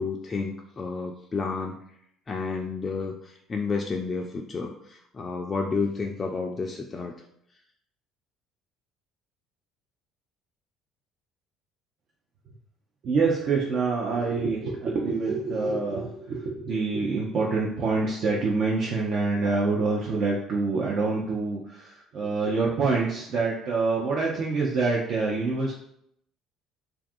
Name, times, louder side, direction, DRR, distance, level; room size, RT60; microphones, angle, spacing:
voice 1, 0.0-1.8 2.3-7.1, left 4 dB, 30° left, 1 dB, 0.3 m, -31 dB
voice 2, 13.0-25.7, right 4 dB, 50° right, -4 dB, 0.5 m, -26 dB
2.5 x 2.2 x 2.6 m, 0.70 s
figure-of-eight pair, 55°, 0 cm